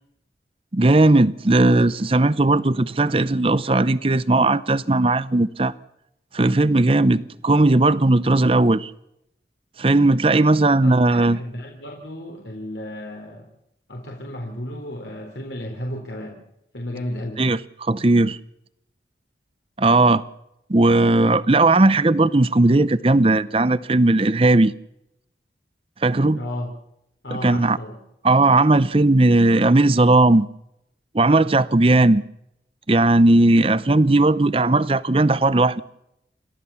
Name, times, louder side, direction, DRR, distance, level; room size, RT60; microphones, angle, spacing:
voice 1, 0.7-5.7 6.3-8.9 9.8-11.4 17.4-18.4 19.8-20.2 20.7-24.7 26.0-26.4 27.4-27.8 28.2-30.5 31.1-32.2 32.9-35.8, right 2 dB, 30° right, 0.7 m, -17 dB
voice 2, 10.8-13.5 13.9-16.4 16.7-17.5 26.4-26.7 27.2-28.0, left 1 dB, 85° left, 3.9 m, -33 dB
29.5 x 13.5 x 7.1 m
head